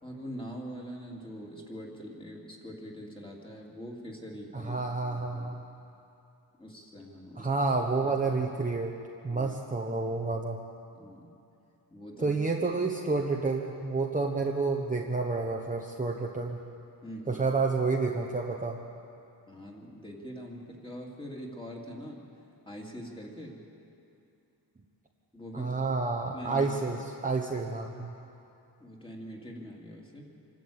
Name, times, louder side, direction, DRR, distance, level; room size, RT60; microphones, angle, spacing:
voice 1, 0.0-5.5 6.6-7.5 8.0-8.1 9.3-9.6 10.9-11.3 11.9-12.4 17.0-17.5 19.5-22.3 22.7-23.6 25.3-26.0 26.2-26.7 27.0-27.1 28.8-30.3, equal, 10° left, -1 dB, 2.6 m, -43 dB
voice 2, 4.5-5.6 7.4-8.9 9.2-10.6 12.2-16.6 17.3-18.8 25.5-27.0 27.2-28.1, right 3 dB, 20° right, 0 dB, 1.0 m, -29 dB
25.5 x 12.5 x 8.7 m, 2.7 s
wide cardioid pair, 155°, 43 cm